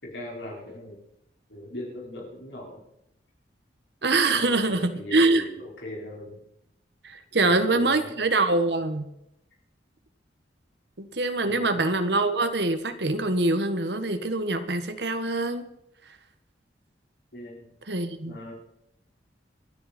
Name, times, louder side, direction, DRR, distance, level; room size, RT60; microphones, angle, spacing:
voice 1, 0.0-1.0 1.5-2.8 4.3-6.4 7.4-8.1 11.4-11.8 17.3-17.7 18.3-18.5, left 1 dB, 80° left, -3 dB, 4.6 m, -39 dB
voice 2, 4.0-5.5 7.0-9.1 11.0-15.7 17.9-18.5, right 2 dB, 70° right, 8 dB, 1.5 m, -24 dB
27.5 x 10.0 x 4.4 m, 0.81 s
head